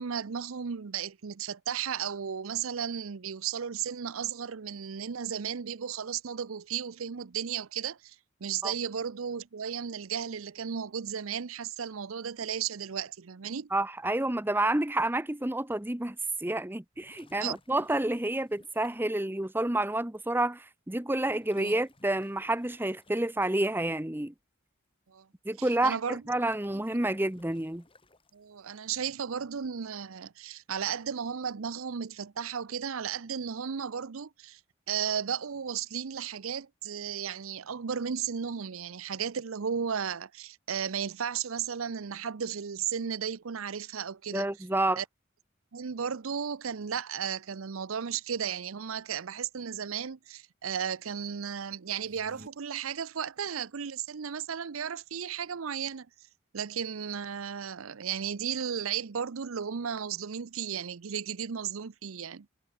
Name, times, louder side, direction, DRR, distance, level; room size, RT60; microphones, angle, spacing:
voice 1, 0.0-8.2 8.4-13.7 17.4-17.6 21.6-21.8 25.1-25.3 25.6-26.2 26.7-26.8 28.3-34.6 34.9-44.5 45.0-45.1 45.7-56.1 56.5-62.5, right 7 dB, 85° right, 0.6 m, -34 dB
voice 2, 13.7-16.2 16.4-24.3 25.4-27.8 44.3-45.0, right 1 dB, 10° right, 0.9 m, -29 dB
sound 1, 16.9-19.1 20.1-20.2 21.3-23.6 26.0-28.6, left 2 dB, 25° left, 7.3 m, -61 dB
sound 2, 51.9-52.5, right 1 dB, 40° right, 3.5 m, -52 dB
head